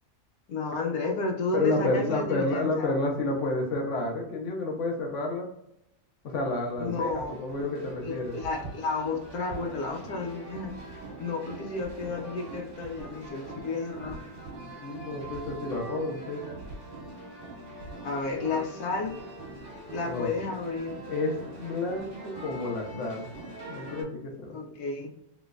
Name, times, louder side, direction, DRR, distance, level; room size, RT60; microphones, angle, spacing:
voice 1, 0.5-2.9 6.8-10.7 11.2-14.2 18.0-19.2 19.9-20.9 24.5-25.1, left 3 dB, 85° left, 2 dB, 1.2 m, -32 dB
voice 2, 1.5-5.5 6.2-8.3 14.8-16.4 20.1-20.3 21.1-21.3 21.6-23.3 23.7-24.6, left 2 dB, 60° left, 1 dB, 1.1 m, -30 dB
sound 1, 6.3-24.0, right 2 dB, 55° right, 1.3 m, -43 dB
3.1 x 3.1 x 2.4 m, 0.79 s
omnidirectional pair, 1.6 m